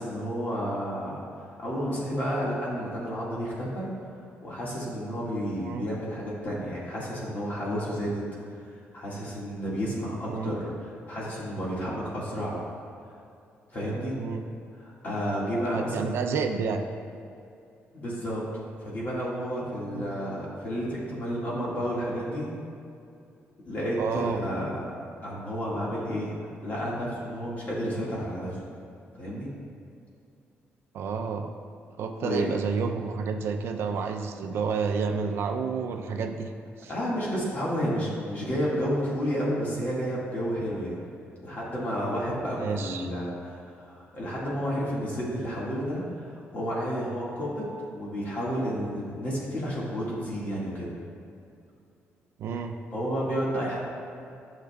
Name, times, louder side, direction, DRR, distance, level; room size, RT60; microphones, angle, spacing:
voice 1, 0.0-3.9 4.4-8.2 8.9-12.6 13.7-14.2 14.8-16.1 17.9-18.4 18.8-22.5 23.6-24.8 25.2-26.3 26.6-28.6 29.2-29.5 32.2-32.5 36.9-41.0 41.4-50.9 52.9-53.8, equal, 40° left, -6 dB, 1.8 m, -31 dB
voice 2, 15.7-16.9 24.0-24.4 30.9-31.5 32.0-36.5 36.8-36.9 42.6-43.1 52.4-52.7, right 5 dB, 70° right, 5 dB, 0.5 m, -30 dB
12.0 x 6.4 x 2.3 m, 2.5 s
cardioid pair, 150°, 4 cm